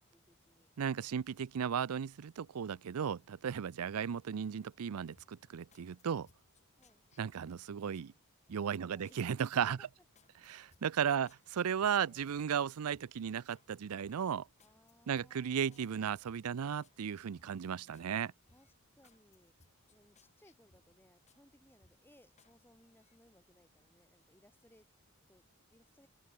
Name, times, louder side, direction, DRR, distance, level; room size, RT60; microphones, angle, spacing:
voice 1, 0.1-0.7 6.8-7.0 8.8-9.9 11.2-11.3 12.0-12.2 14.6-16.2 18.5-19.5 19.9-24.9 25.3-25.4 25.7-26.1, left 1 dB, 10° left, 6.9 m, -66 dB
voice 2, 0.8-6.3 7.2-8.1 8.5-9.8 10.4-14.5 15.1-18.3, right 7 dB, 90° right, 0.5 m, -35 dB
sound 1, 5.2-8.1 8.5-9.2 9.6-12.6 12.9-13.7 14.0-17.0 17.4-18.1 18.5-21.4 21.8-22.6 22.9-23.2, left 3 dB, 30° left, 2.5 m, -70 dB
open air
head